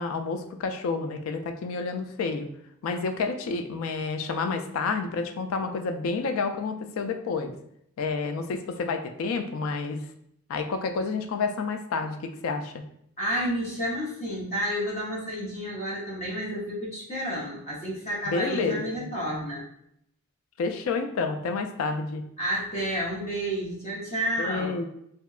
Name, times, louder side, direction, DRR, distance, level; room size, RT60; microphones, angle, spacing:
voice 1, 0.0-2.5 2.8-7.5 8.0-10.0 10.5-12.7 18.3-18.8 20.6-22.2 24.4-24.9, left 4 dB, 75° left, 7 dB, 0.3 m, -29 dB
voice 2, 13.2-19.6 22.4-24.7, equal, 30° left, -6 dB, 0.7 m, -30 dB
2.7 x 2.2 x 2.3 m, 0.72 s
head